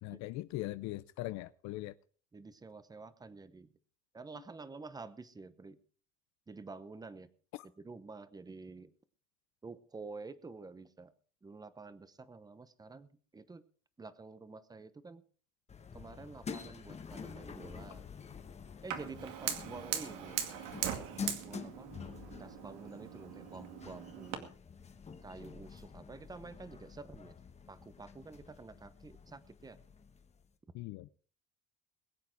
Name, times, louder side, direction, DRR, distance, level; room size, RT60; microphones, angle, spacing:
voice 1, 0.0-1.9 30.7-31.1, left 18 dB, 65° left, 0.6 m, -40 dB
voice 2, 2.3-3.7 4.1-5.8 6.5-7.3 7.8-8.9 9.6-11.1 11.4-13.6 14.0-15.2 15.9-18.1 18.8-20.4 20.9-21.9 22.2-24.5 25.2-27.3 27.7-29.8, right 3 dB, 15° right, 0.9 m, -49 dB
sound 1, 15.7-30.5, left 5 dB, 20° left, 1.2 m, -48 dB
Fire, 18.9-24.4, right 10 dB, 90° right, 2.3 m, -40 dB
22.0 x 8.5 x 4.7 m
cardioid pair, 140°, 30 cm